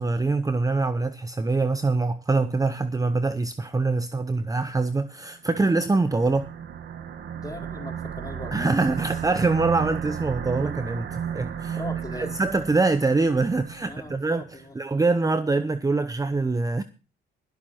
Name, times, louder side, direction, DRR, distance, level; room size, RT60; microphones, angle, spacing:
voice 1, 0.0-6.5 8.5-11.8 12.1-16.8, right 3 dB, 15° right, 0.8 m, -24 dB
sound 1, 5.6-14.2, right 8 dB, 65° right, 2.0 m, -33 dB
voice 2, 7.3-8.7 11.7-12.3 13.8-14.7, left 2 dB, 20° left, 4.2 m, -39 dB
20.5 x 7.5 x 4.4 m
cardioid pair, 90°, 20 cm